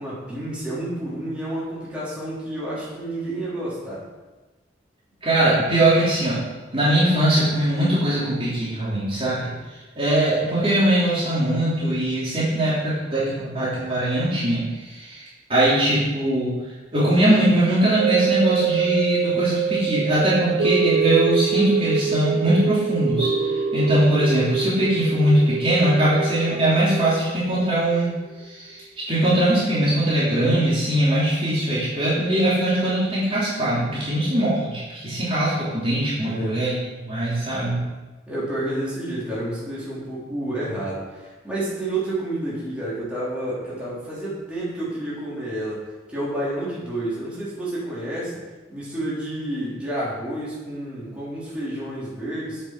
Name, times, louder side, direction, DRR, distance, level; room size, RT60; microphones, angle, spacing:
voice 1, 0.0-4.0 36.2-36.6 38.3-45.8 46.1-48.4 48.7-52.6, right 1 dB, 5° right, -9 dB, 3.5 m, -30 dB
voice 2, 5.2-6.4 6.7-9.5 10.0-15.2 15.5-16.5 16.9-28.1 28.5-28.8 29.1-36.7 37.0-37.8, right 1 dB, 30° right, -9 dB, 3.1 m, -21 dB
sound 1, 18.0-28.3 28.8-28.9, right 7 dB, 75° right, 0.9 m, -25 dB
8.5 x 6.6 x 5.9 m, 1.2 s
head